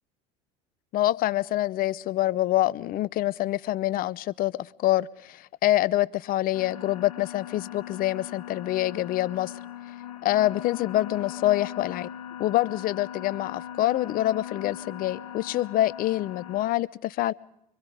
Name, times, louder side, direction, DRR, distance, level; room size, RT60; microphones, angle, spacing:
voice 1, 0.9-9.5 10.2-12.1 12.4-17.3, left 15 dB, 50° left, 0.8 m, -26 dB
sound 1, 6.5-16.7, left 10 dB, 85° left, 2.1 m, -40 dB
25.0 x 24.5 x 4.9 m
hypercardioid pair, 75°, 19 cm